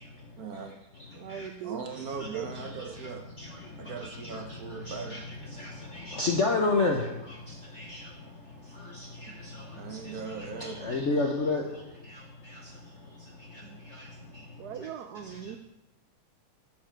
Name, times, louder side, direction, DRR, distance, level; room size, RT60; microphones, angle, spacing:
voice 1, 0.4-0.8 1.6-3.2 3.8-5.2 9.7-10.8, right 5 dB, 55° right, 3 dB, 1.1 m, -39 dB
voice 2, 1.1-1.8 2.2-2.7 9.3-9.4 13.6-13.8 14.6-15.6, right 9 dB, 80° right, 7 dB, 0.9 m, -40 dB
voice 3, 4.9-5.2 5.6-5.7 6.1-7.0 7.8-8.0 10.6-11.6, left 3 dB, 55° left, 1 dB, 0.8 m, -27 dB
11.5 x 7.1 x 4.5 m, 0.93 s
omnidirectional pair, 2.3 m